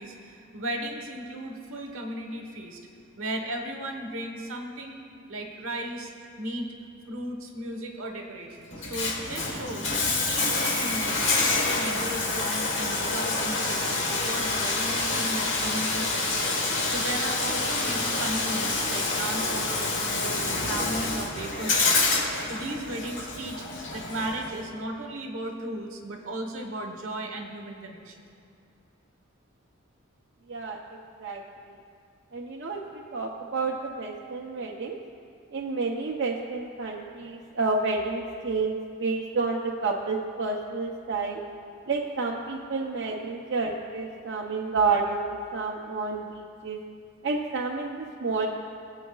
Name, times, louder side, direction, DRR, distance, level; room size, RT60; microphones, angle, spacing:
voice 1, 0.0-2.8 3.2-5.0 5.3-6.1 6.4-6.7 7.1-9.9 10.3-16.6 16.9-22.2 22.5-23.6 23.9-28.1 42.8-43.2 44.2-44.3, right 1 dB, 75° right, 3 dB, 1.2 m, -36 dB
Bathtub (filling or washing), 8.7-24.7, left 3 dB, 60° left, 1.5 m, -27 dB
voice 2, 30.5-31.4 32.3-32.8 33.1-35.0 35.5-41.4 41.9-46.8 47.2-48.5, right 3 dB, 55° right, -2 dB, 0.7 m, -30 dB
22.5 x 8.1 x 2.4 m, 2.3 s
head